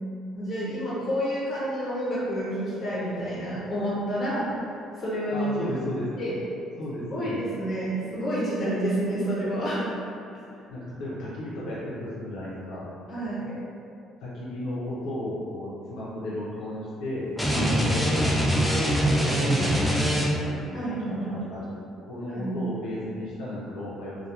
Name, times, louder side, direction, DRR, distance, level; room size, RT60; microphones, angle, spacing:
voice 1, 0.3-4.7 5.0-5.5 6.2-6.4 7.1-9.9 13.1-13.6 17.5-17.8 20.7-21.3 22.3-22.6, equal, 40° left, -9 dB, 1.0 m, -29 dB
voice 2, 5.3-6.2 6.8-7.4 10.7-12.9 14.2-18.0 19.0-20.9 21.5-21.6 22.1-24.2, left 1 dB, 80° left, -9 dB, 0.6 m, -34 dB
sound 1, 17.4-20.6, equal, 5° left, 0.4 m, -23 dB
2.3 x 2.2 x 2.8 m, 2.6 s
cardioid pair, 115°, 0 cm